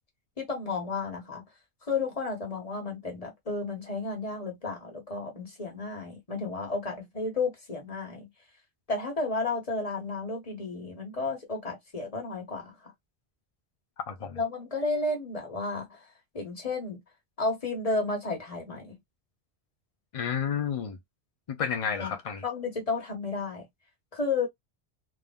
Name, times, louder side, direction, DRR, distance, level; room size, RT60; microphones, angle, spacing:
voice 1, 0.4-1.4 1.9-8.3 8.9-12.9 14.4-16.0 16.3-17.0 17.4-19.0 22.0-22.1 22.4-23.6 24.1-24.5, left 3 dB, 35° left, 1.2 m, -32 dB
voice 2, 14.1-14.4 20.1-21.0 21.5-22.4, left 7 dB, 55° left, 0.4 m, -31 dB
2.6 x 2.4 x 3.6 m
omnidirectional pair, 1.1 m